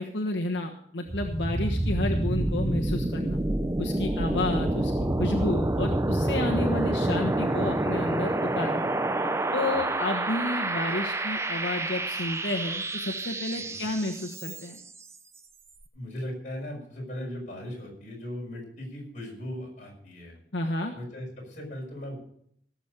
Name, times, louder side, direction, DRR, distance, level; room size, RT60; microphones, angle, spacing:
voice 1, 0.0-3.4 3.8-4.9 5.2-8.9 9.5-14.8 20.5-20.9, left 2 dB, 80° left, 1 dB, 1.3 m, -31 dB
sound 1, 1.1-14.9, right 1 dB, 15° right, 0.5 m, -28 dB
voice 2, 4.2-4.7 9.6-10.0 13.5-13.9 15.9-20.4 20.9-22.2, left 1 dB, 40° left, -2 dB, 6.0 m, -39 dB
17.0 x 7.3 x 6.7 m, 0.67 s
head